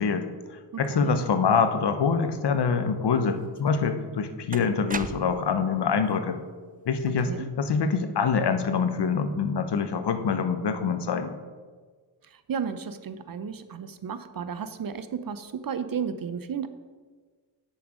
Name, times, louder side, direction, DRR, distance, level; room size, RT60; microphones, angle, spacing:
voice 1, 0.0-6.4 6.9-7.3 7.6-11.3, left 5 dB, 55° left, 9 dB, 1.0 m, -25 dB
voice 2, 0.9-1.2 7.2-7.5 12.2-16.7, right 7 dB, 45° right, 11 dB, 0.7 m, -33 dB
sound 1, 3.6-3.7 4.5-5.6, right 6 dB, 20° right, 0.3 m, -36 dB
8.5 x 5.9 x 5.0 m, 1.5 s
supercardioid pair, 50°, 49 cm